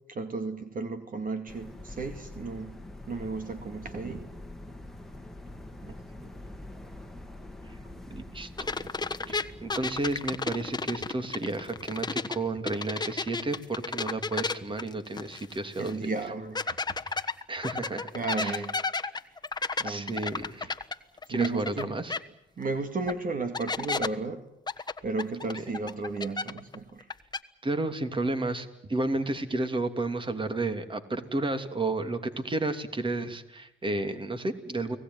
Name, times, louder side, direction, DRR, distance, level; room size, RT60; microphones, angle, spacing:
voice 1, 0.1-2.8 3.1-4.3 5.8-5.9 8.8-8.9 9.3-9.4 15.8-16.8 17.1-17.2 18.1-18.8 19.3-19.4 19.8-20.5 20.8-20.9 21.2-22.0 22.6-24.5 24.8-27.1, right 3 dB, 45° right, 8 dB, 2.3 m, -34 dB
sound 1, 1.5-11.0, left 1 dB, ahead, 2.2 m, -45 dB
voice 2, 8.1-8.8 9.3-16.1 17.1-17.2 17.5-18.1 18.4-18.6 19.8-20.7 21.3-22.1 27.6-35.0, right 2 dB, 25° right, 9 dB, 2.9 m, -32 dB
sound 2, 8.6-12.4 12.7-15.6 15.9-16.0 16.6-21.8 22.1-22.2 23.1-23.2 23.5-24.1 24.7-26.8 27.0-27.4, left 4 dB, 20° left, 1.3 m, -32 dB
30.0 x 18.5 x 9.6 m, 0.82 s
cardioid pair, 90°, 20 cm